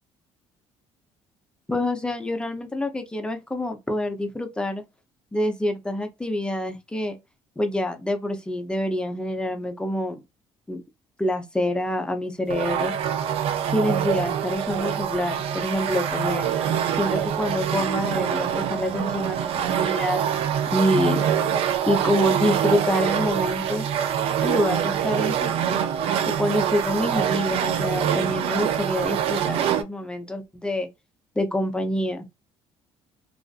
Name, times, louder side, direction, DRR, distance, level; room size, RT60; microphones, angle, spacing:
voice 1, 1.7-4.8 5.3-7.2 7.6-10.2 10.7-10.8 11.2-12.9 13.7-16.5 17.0-20.2 20.7-21.2 21.9-23.8 24.4-25.8 26.3-30.9 31.4-32.3, left 1 dB, 10° left, 0.5 m, -26 dB
sound 1, 12.5-29.8, right 9 dB, 60° right, 0.4 m, -25 dB
2.5 x 2.4 x 2.3 m
cardioid pair, 135°, 11 cm